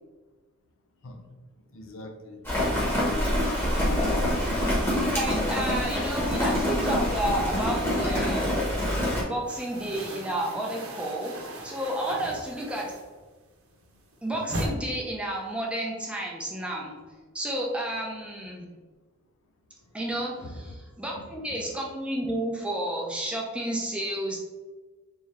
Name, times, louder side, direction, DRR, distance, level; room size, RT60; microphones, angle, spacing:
voice 1, 1.7-2.4 2.7-3.3 4.2-4.5 20.4-20.6 21.2-21.3, left 2 dB, 65° left, 4 dB, 0.5 m, -41 dB
Rain, 2.4-9.2, left 1 dB, 10° left, 1.0 m, -26 dB
voice 2, 4.7-8.7 9.3-11.3 11.6-12.9 14.2-16.9 17.3-18.7 19.9-24.4, right 1 dB, 5° right, -2 dB, 0.5 m, -31 dB
sound 1, 7.7-8.7 8.9-13.4 13.7-14.7, right 1 dB, 75° right, 0.7 m, -38 dB
3.6 x 2.8 x 3.2 m, 1.3 s
head